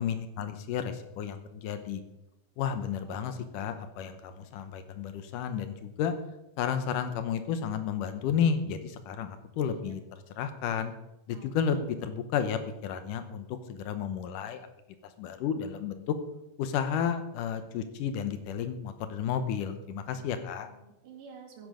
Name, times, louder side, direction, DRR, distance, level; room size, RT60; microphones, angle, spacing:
voice 1, 0.0-2.0 2.6-6.1 6.6-10.0 10.4-10.9 11.3-14.7 15.2-16.2 16.6-20.7, left 7 dB, 85° left, 9 dB, 2.5 m, -32 dB
voice 2, 2.6-3.4 9.6-10.0 11.3-12.0 20.1-20.3 20.6-21.7, right 4 dB, 85° right, 3 dB, 3.6 m, -51 dB
14.0 x 10.5 x 5.0 m, 0.90 s
omnidirectional pair, 3.7 m